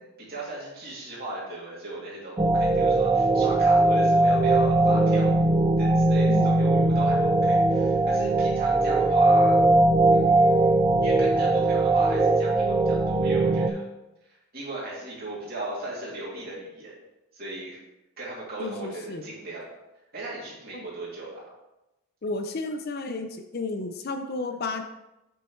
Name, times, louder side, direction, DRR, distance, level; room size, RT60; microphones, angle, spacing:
voice 1, 0.2-5.4 5.8-9.6 10.1-13.9 14.3-16.9 17.3-17.8 18.2-19.6 20.1-21.4, right 2 dB, 45° right, -6 dB, 2.7 m, -37 dB
sound 1, 2.4-13.7, right 2 dB, 20° right, 0.5 m, -20 dB
voice 2, 18.6-19.2 20.7-20.8 22.2-24.8, left 3 dB, 45° left, 7 dB, 0.5 m, -32 dB
7.9 x 6.1 x 3.2 m, 0.94 s
head